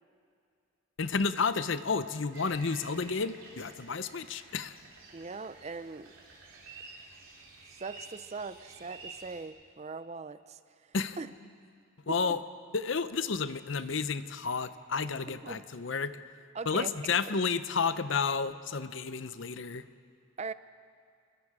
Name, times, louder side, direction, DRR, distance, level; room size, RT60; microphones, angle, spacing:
voice 1, 1.0-4.7 10.9-11.2 12.1-12.4 12.7-16.1 16.7-19.8, left 5 dB, 60° left, 13 dB, 0.7 m, -31 dB
sound 1, 2.3-9.4, right 3 dB, 70° right, 3.1 m, -51 dB
voice 2, 5.1-6.1 7.7-10.6 11.2-11.3 12.1-12.4 15.4-15.6 16.5-17.4 20.4-20.5, right 4 dB, 30° right, 14 dB, 0.4 m, -40 dB
27.0 x 20.0 x 4.9 m, 2.3 s
head